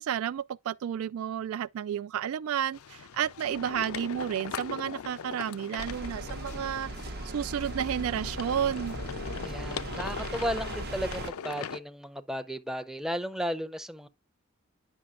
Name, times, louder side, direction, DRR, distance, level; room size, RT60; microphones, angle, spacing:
voice 1, 0.0-9.0, right 9 dB, 85° right, 0.3 m, -32 dB
sound 1, 2.7-11.8, left 7 dB, 85° left, 0.5 m, -40 dB
sound 2, 5.8-11.3, right 2 dB, 50° right, 0.7 m, -38 dB
voice 2, 9.4-14.1, equal, ahead, 0.5 m, -34 dB
9.9 x 5.9 x 2.4 m
head